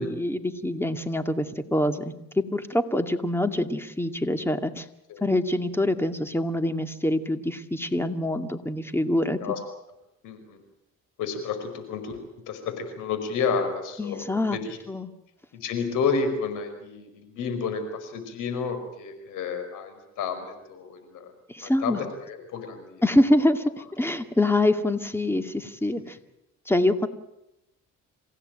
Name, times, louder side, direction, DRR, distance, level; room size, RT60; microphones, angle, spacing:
voice 1, 0.0-4.9 5.2-9.4 14.0-14.6 14.9-15.1 21.5-22.0 23.0-26.2 26.7-27.1, left 1 dB, 10° left, 8 dB, 2.2 m, -25 dB
voice 2, 10.2-10.6 11.2-12.2 12.5-14.8 15.5-21.3 21.6-23.0, left 5 dB, 90° left, 8 dB, 5.3 m, -31 dB
27.5 x 16.0 x 9.0 m, 0.87 s
cardioid pair, 90°, 30 cm